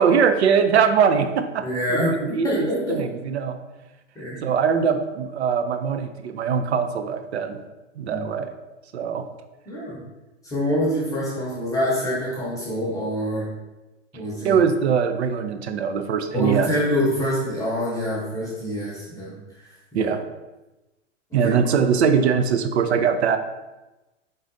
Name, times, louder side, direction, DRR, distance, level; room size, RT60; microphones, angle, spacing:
voice 1, 0.0-1.6 1.9-3.6 4.4-7.6 8.0-8.5 8.9-9.3 14.4-16.7 19.9-20.2 21.3-23.4, right 6 dB, 60° right, 8 dB, 0.5 m, -21 dB
voice 2, 1.6-2.1 2.4-3.0 4.1-4.5 8.0-8.2 9.7-10.0 10.4-13.5 14.1-14.6 16.3-20.1 21.4-21.5, equal, 10° left, -6 dB, 0.8 m, -26 dB
3.9 x 3.9 x 2.6 m, 1.1 s
figure-of-eight pair, 100°, 37 cm